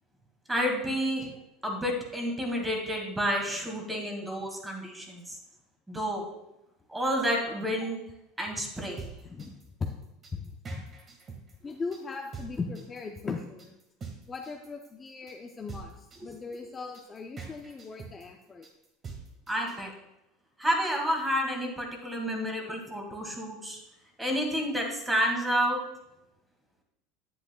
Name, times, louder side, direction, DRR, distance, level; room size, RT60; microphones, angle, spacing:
voice 1, 0.5-1.3 1.6-5.2 5.9-6.2 6.9-8.0 8.4-9.0 19.5-19.9 20.6-23.8 24.2-25.8, equal, 10° right, 1 dB, 1.9 m, -30 dB
sound 1, 8.8-19.8, right 5 dB, 35° right, 1.7 m, -44 dB
voice 2, 9.2-9.9 10.3-10.8 11.6-13.7 14.3-18.7, left 4 dB, 25° left, 2 dB, 0.6 m, -38 dB
10.0 x 7.9 x 2.3 m, 0.86 s
supercardioid pair, 105°, 0 cm